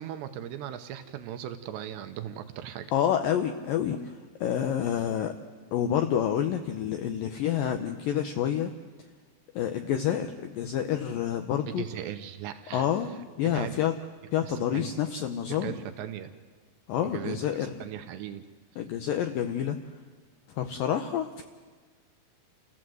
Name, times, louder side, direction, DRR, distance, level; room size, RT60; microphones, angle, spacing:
voice 1, 0.0-2.9 11.7-12.9 13.4-13.8 14.4-14.9 15.5-16.4 17.0-17.4 17.8-18.5, right 11 dB, 75° right, 8 dB, 3.0 m, -38 dB
voice 2, 2.9-5.4 5.7-8.7 9.5-11.8 12.7-13.1 13.4-13.9 14.3-15.8 16.9-17.7 18.8-19.8 20.5-21.4, left 9 dB, 90° left, 6 dB, 1.9 m, -28 dB
29.0 x 16.0 x 7.8 m, 1.5 s
omnidirectional pair, 5.2 m